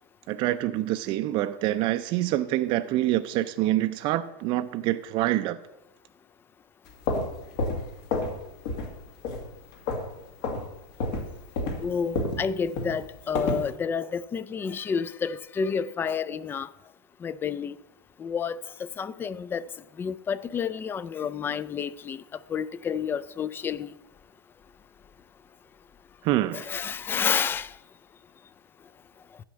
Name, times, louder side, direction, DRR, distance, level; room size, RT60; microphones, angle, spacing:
voice 1, 0.3-5.6 26.2-26.7, right 15 dB, 40° right, 0.5 m, -26 dB
sound 1, 6.9-8.4 8.7-9.0 9.2-10.1 10.4-10.7 11.0-13.7, left 2 dB, 65° left, 2.1 m, -29 dB
voice 2, 11.8-16.7 17.2-17.8 18.2-19.6 20.0-22.2 22.5-23.9 26.5-27.7, left 6 dB, 15° left, 0.3 m, -30 dB
10.5 x 4.5 x 7.3 m
supercardioid pair, 135°, 12 cm